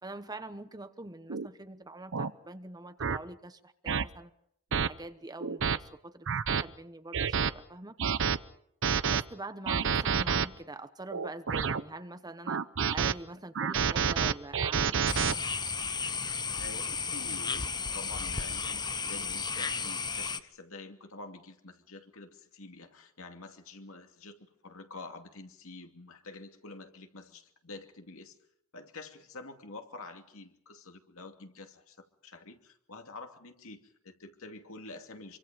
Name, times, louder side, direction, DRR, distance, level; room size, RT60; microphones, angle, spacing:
voice 1, 0.0-4.3 4.7-8.0 9.1-12.6 12.9-15.1, right 2 dB, 20° right, 11 dB, 1.1 m, -44 dB
sound 1, 1.3-1.5 2.1-2.3 3.0-3.2 3.9-4.0 4.7-4.9 5.4-5.8 6.3-6.6 7.1-7.5 8.0-8.4 8.8-9.2 9.7-10.5 11.1-11.8 12.5-13.1 13.5-15.3, right 6 dB, 65° right, 0.8 m, -28 dB
sound 2, 15.1-20.4, left 5 dB, 20° left, 0.9 m, -34 dB
voice 2, 16.5-28.4 28.7-35.4, left 3 dB, 70° left, 5 dB, 2.6 m, -48 dB
26.5 x 24.5 x 5.1 m, 0.70 s
head